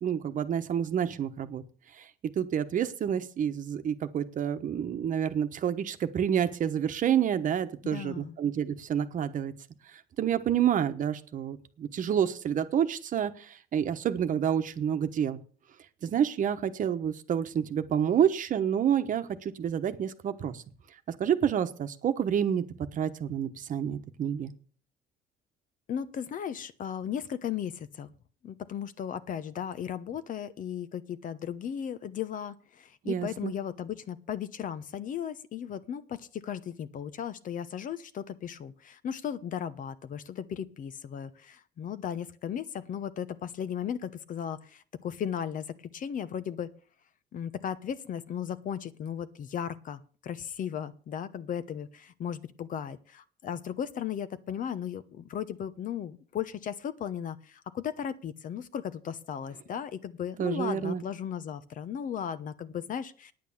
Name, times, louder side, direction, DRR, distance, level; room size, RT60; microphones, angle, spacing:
voice 1, 0.0-1.6 2.0-2.1 2.4-9.5 10.2-15.4 16.0-20.6 21.1-22.6 22.9-24.5 33.0-33.5 60.4-61.0, right 9 dB, 50° right, 9 dB, 1.1 m, -28 dB
voice 2, 7.8-8.4 25.9-28.1 28.4-45.7 45.9-46.7 47.3-63.3, left 8 dB, 50° left, 14 dB, 0.9 m, -36 dB
9.6 x 8.6 x 7.2 m, 0.43 s
cardioid pair, 110°, 17 cm